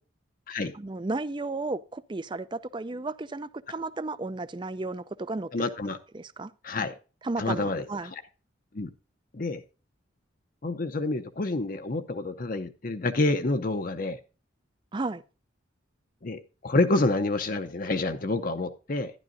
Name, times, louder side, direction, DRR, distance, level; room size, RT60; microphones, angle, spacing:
voice 1, 0.7-5.5 6.1-6.5 7.2-8.1 14.9-15.2, right 3 dB, 25° right, 0.4 m, -33 dB
voice 2, 5.5-6.0 6.6-6.9 7.4-8.1 8.7-8.9 9.3-9.6 10.6-14.2 16.2-19.1, left 2 dB, 45° left, 0.6 m, -28 dB
12.0 x 11.0 x 2.6 m
head